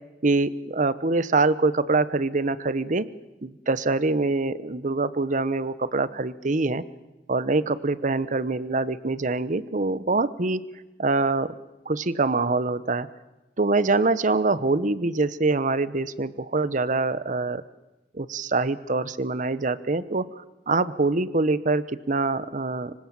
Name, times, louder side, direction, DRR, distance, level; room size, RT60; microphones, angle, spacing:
voice 1, 0.2-3.1 3.4-6.8 7.3-10.6 11.0-11.5 11.9-13.1 13.6-17.6 18.1-22.9, right 3 dB, 45° right, 16 dB, 1.0 m, -24 dB
25.5 x 24.5 x 7.5 m, 1.0 s
head